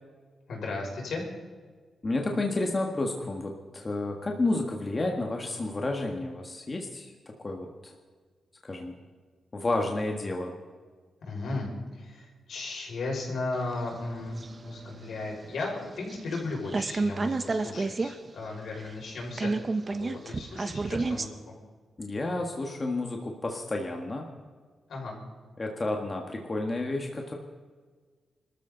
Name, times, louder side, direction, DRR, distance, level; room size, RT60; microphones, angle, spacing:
voice 1, 0.5-1.3 11.2-19.5 19.9-21.5 24.9-25.2, left 3 dB, 75° left, -1 dB, 5.9 m, -35 dB
voice 2, 2.0-7.1 7.4-7.9 8.6-8.9 9.5-10.5 22.0-24.3 25.6-27.3, left 2 dB, 25° left, 1 dB, 1.7 m, -31 dB
sound 1, 13.5-16.4 16.7-18.1 18.4-18.5 18.8-21.3, right 3 dB, 30° right, 0.9 m, -31 dB
26.0 x 13.5 x 4.0 m, 1.5 s
wide cardioid pair, 140°, 0 cm